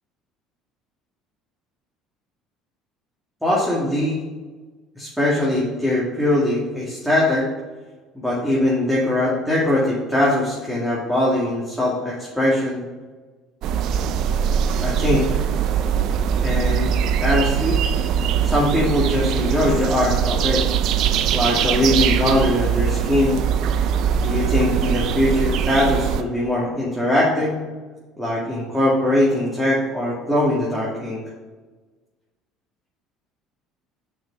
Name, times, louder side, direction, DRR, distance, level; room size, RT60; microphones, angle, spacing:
voice 1, 3.4-4.2 5.0-7.5 8.1-12.8 14.8-15.4 16.4-16.9 17.2-17.8 18.4-20.6 21.3-23.4 24.2-27.6 28.2-31.2, left 1 dB, 5° right, -6 dB, 2.2 m, -21 dB
sound 1, 13.6-26.2, right 8 dB, 60° right, 0.5 m, -21 dB
6.2 x 6.1 x 5.4 m, 1.3 s
supercardioid pair, 100°, 0 cm